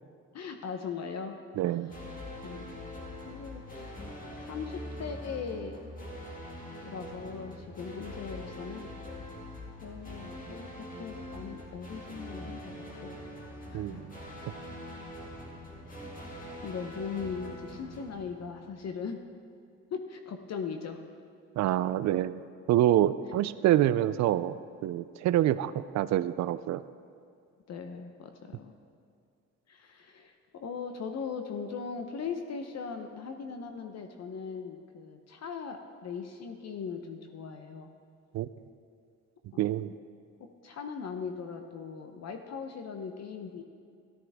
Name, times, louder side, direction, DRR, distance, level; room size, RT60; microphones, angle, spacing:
voice 1, 0.3-1.4 2.4-2.7 3.3-3.9 4.4-5.8 6.8-8.9 9.8-13.2 13.7-14.1 15.9-19.2 19.9-21.0 27.7-28.7 29.7-37.9 39.5-39.7 40.4-43.6, left 6 dB, 60° left, 6 dB, 0.9 m, -39 dB
voice 2, 1.6-1.9 13.7-14.1 21.6-22.4 22.7-26.8 38.3-38.5 39.6-39.9, right 12 dB, 65° right, 14 dB, 0.4 m, -26 dB
sound 1, 1.9-18.9, left 1 dB, 25° left, 2.3 m, -43 dB
14.0 x 13.0 x 3.5 m, 2.4 s
cardioid pair, 90°, 30 cm